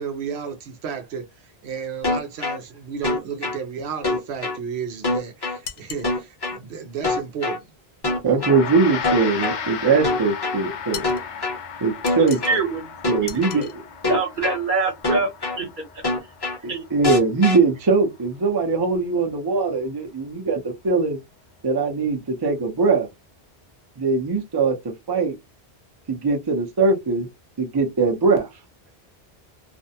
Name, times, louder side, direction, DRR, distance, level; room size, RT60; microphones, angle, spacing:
voice 1, 0.0-7.7, right 6 dB, 85° right, 0.8 m, -33 dB
sound 1, 2.0-2.6 3.0-3.6 4.0-4.6 5.0-5.6 6.0-6.6 7.0-7.6 8.0-8.6 9.0-9.6 10.0-10.6 11.0-11.6 12.0-12.6 13.0-13.6 14.0-14.6 15.0-15.6 16.0-16.6 17.0-17.6, left 2 dB, 25° left, 0.8 m, -24 dB
sound 2, 5.6-6.1 10.9-11.3 12.1-12.6 13.3-13.8, left 7 dB, 90° left, 0.9 m, -37 dB
voice 2, 8.2-11.0 11.8-12.4 13.1-13.7 16.6-21.2 21.6-23.1 24.0-25.4 26.1-27.3 27.6-28.5, right 4 dB, 30° right, 0.6 m, -21 dB
Gong, 8.4-17.9, left 7 dB, 55° left, 0.6 m, -35 dB
voice 3, 12.2-13.7 14.1-15.8 16.7-16.8, right 4 dB, 50° right, 1.1 m, -25 dB
2.5 x 2.1 x 2.7 m
omnidirectional pair, 1.1 m